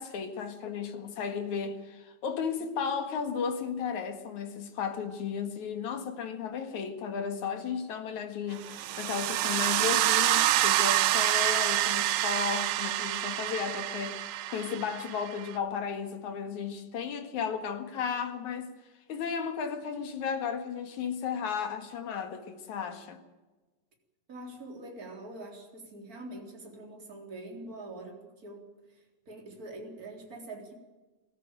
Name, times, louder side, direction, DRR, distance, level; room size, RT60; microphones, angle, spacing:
voice 1, 0.0-18.7 19.1-23.2, left 6 dB, 65° left, 3.0 m, -34 dB
sound 1, 8.6-15.5, right 14 dB, 80° right, 2.5 m, -27 dB
voice 2, 24.3-30.7, right 2 dB, 25° right, 4.1 m, -44 dB
23.5 x 14.0 x 9.0 m
omnidirectional pair, 3.9 m